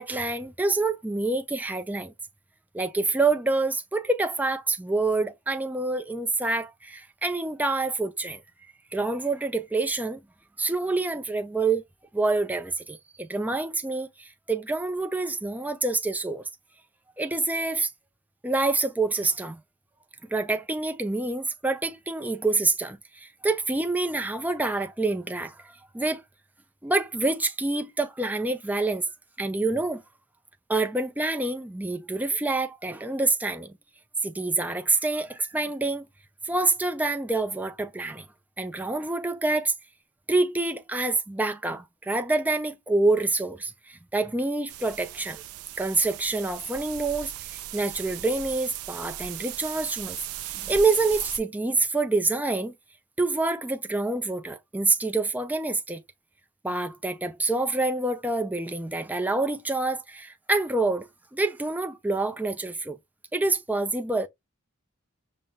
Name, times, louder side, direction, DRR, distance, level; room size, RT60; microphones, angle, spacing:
voice 1, 0.0-2.1 2.7-8.4 8.9-10.2 10.6-11.8 12.1-16.4 17.2-17.9 18.4-19.6 20.3-26.2 26.8-29.1 29.4-30.0 30.7-33.7 34.2-36.1 36.4-38.3 38.6-39.7 40.3-45.4 45.8-50.2 50.5-52.7 53.2-56.0 56.6-63.0 63.3-64.3, right 3 dB, 10° right, 0.4 m, -27 dB
sound 1, 44.7-51.4, right 12 dB, 85° right, 0.4 m, -38 dB
5.4 x 2.1 x 3.1 m
head